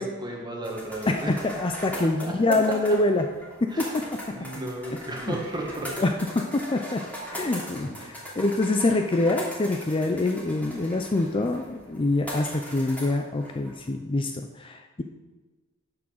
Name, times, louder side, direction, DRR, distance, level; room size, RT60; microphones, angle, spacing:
voice 1, 0.0-1.4 1.9-2.8 3.7-4.0 4.3-6.1, right 2 dB, 20° right, 0 dB, 1.6 m, -34 dB
sound 1, 0.6-13.9, equal, 5° left, 2.9 m, -40 dB
voice 2, 1.6-3.2 3.6-4.0 4.9-5.0 5.2-5.4 6.0-6.1 6.5-7.0 7.3-15.0, left 2 dB, 25° left, 5 dB, 0.5 m, -25 dB
9.7 x 6.1 x 6.4 m, 1.2 s
head